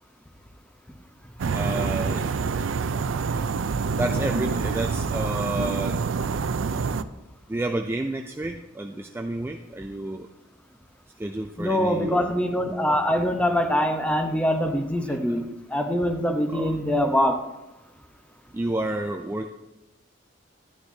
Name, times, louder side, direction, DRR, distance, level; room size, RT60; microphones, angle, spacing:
sound 1, 1.4-7.0, right 5 dB, 75° right, 0.4 m, -26 dB
voice 1, 1.5-2.3 4.0-6.0 7.5-10.3 11.2-12.2 15.1-15.4 16.5-16.8 18.5-19.5, right 2 dB, 10° right, 4 dB, 0.3 m, -30 dB
voice 2, 11.6-17.4, equal, 5° left, 5 dB, 0.8 m, -24 dB
11.5 x 9.7 x 2.7 m, 0.96 s
head